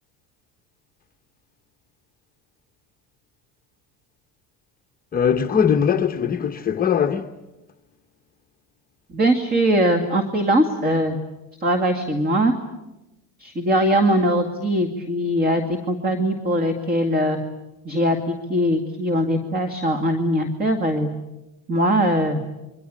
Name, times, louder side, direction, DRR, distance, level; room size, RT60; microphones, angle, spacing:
voice 1, 5.1-7.3, left 7 dB, 25° left, 0.9 m, -20 dB
voice 2, 9.1-11.2 11.6-12.5 13.4-17.4 17.9-21.1 21.7-22.4, equal, 25° right, 2.3 m, -21 dB
27.5 x 24.5 x 8.7 m
cardioid pair, 145°, 36 cm